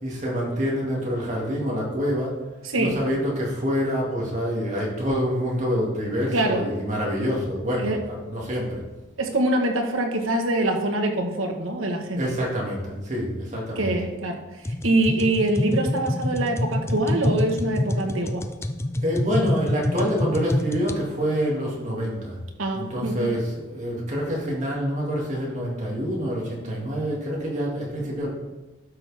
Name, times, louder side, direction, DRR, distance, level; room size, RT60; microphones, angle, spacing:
voice 1, 0.0-2.3 2.8-8.8 12.2-13.9 18.9-22.4 22.7-28.3, equal, 35° right, -4 dB, 2.4 m, -26 dB
voice 2, 2.6-3.0 6.3-6.7 7.8-8.0 9.2-12.3 13.7-18.4 22.6-23.3, right 1 dB, 85° right, 3 dB, 1.4 m, -24 dB
sound 1, 14.6-21.0, left 1 dB, 15° left, 0.3 m, -26 dB
12.5 x 6.0 x 3.5 m, 1.1 s
head